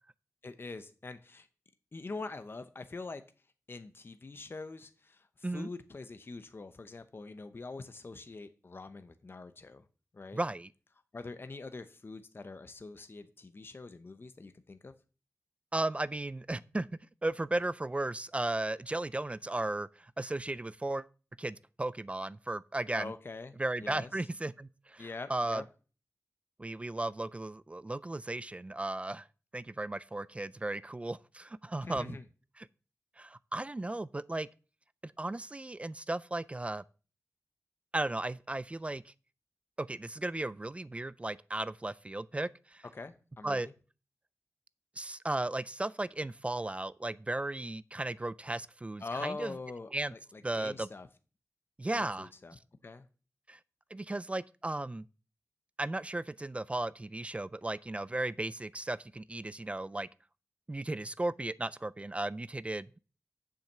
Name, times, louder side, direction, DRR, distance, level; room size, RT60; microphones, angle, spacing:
voice 1, 0.4-1.5 1.9-3.2 3.7-9.8 10.1-10.4 11.1-14.9 22.9-24.2 25.0-25.6 31.8-32.2 42.9-43.7 49.0-51.1 51.9-52.6 52.8-53.1, left 3 dB, 45° left, 0.8 m, -44 dB
voice 2, 10.3-10.7 15.7-16.9 17.2-21.1 21.4-23.1 23.6-25.6 26.6-29.3 29.5-32.2 33.2-34.5 35.0-36.8 37.9-39.1 39.8-42.8 43.4-43.7 45.0-49.5 49.9-50.1 50.4-50.9 51.8-52.3 53.5-53.6 53.9-55.1 55.8-60.1 60.7-62.9, right 2 dB, 25° right, 0.3 m, -35 dB
7.4 x 5.7 x 6.6 m
wide cardioid pair, 95°, 5 cm